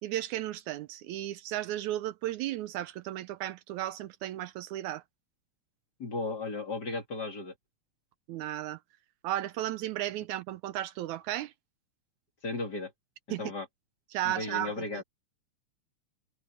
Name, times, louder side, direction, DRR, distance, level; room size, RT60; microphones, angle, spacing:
voice 1, 0.0-5.0 8.3-8.8 9.2-11.5 13.3-13.4 14.1-15.0, right 14 dB, 80° right, 1.9 m, -34 dB
voice 2, 6.0-7.5 12.4-12.9 13.3-13.7 14.2-15.0, left 3 dB, 35° left, 2.7 m, -35 dB
omnidirectional pair, 3.6 m